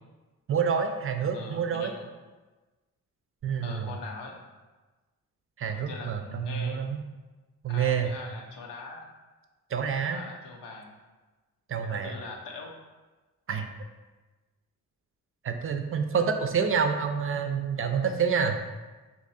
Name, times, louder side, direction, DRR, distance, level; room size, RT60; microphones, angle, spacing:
voice 1, 0.5-2.0 3.4-3.9 5.6-7.0 7.6-8.1 9.7-10.2 11.7-12.1 13.5-13.7 15.4-18.6, right 6 dB, 35° right, 6 dB, 0.5 m, -28 dB
voice 2, 1.3-2.1 3.6-4.4 5.7-6.8 7.7-9.1 9.9-10.9 11.8-12.7, left 3 dB, 85° left, 0 dB, 0.6 m, -42 dB
2.8 x 2.5 x 4.0 m, 1.2 s
supercardioid pair, 45°, 39 cm